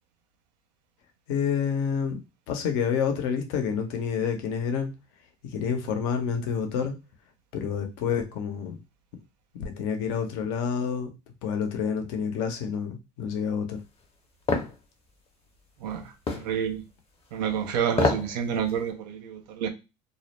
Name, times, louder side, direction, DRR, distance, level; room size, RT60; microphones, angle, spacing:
voice 1, 1.3-2.2 2.5-4.9 5.5-6.9 7.5-8.8 9.6-11.1 11.4-13.8, left 7 dB, 70° left, 0.7 m, -28 dB
sound 1, 14.5-14.7 16.3-16.5 17.9-18.3 18.7-18.8, left 4 dB, 30° left, 0.7 m, -25 dB
voice 2, 15.8-16.8 17.3-19.7, right 8 dB, 80° right, 0.6 m, -29 dB
2.4 x 2.0 x 3.0 m
hypercardioid pair, 85°, 21 cm